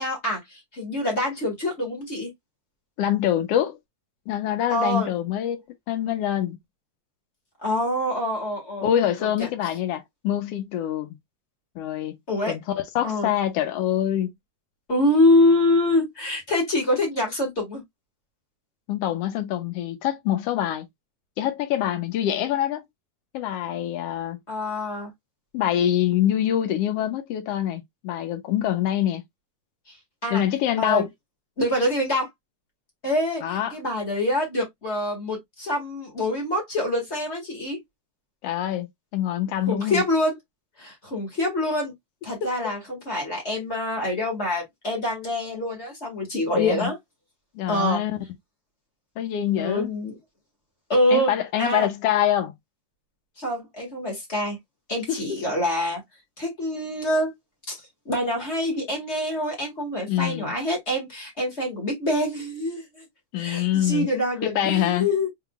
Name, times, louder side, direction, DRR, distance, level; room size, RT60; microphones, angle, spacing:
voice 1, 0.0-2.3 4.7-5.1 7.6-8.9 9.4-9.5 12.3-12.5 13.0-13.3 14.9-17.8 24.5-25.1 30.2-30.4 30.8-31.0 31.6-32.3 33.0-37.8 39.7-40.4 40.8-41.9 42.2-47.0 47.7-48.0 49.6-50.1 50.9-51.3 51.6-51.9 53.4-54.6 54.9-56.0 56.4-57.3 57.7-57.8 58.0-63.0 63.4-65.3, left 1 dB, 30° left, 1.5 m, -25 dB
voice 2, 3.0-3.8 4.3-6.6 8.8-11.1 11.8-12.2 12.5-14.3 18.9-20.9 21.4-22.8 23.3-24.4 25.5-29.2 30.3-31.1 33.4-33.7 38.4-40.0 42.4-42.5 46.5-46.9 47.5-48.2 49.2-49.9 51.1-52.5 55.1-55.4 60.1-60.5 63.3-64.1 64.4-65.1, left 11 dB, 75° left, 1.5 m, -25 dB
4.5 x 3.7 x 2.3 m
omnidirectional pair, 3.3 m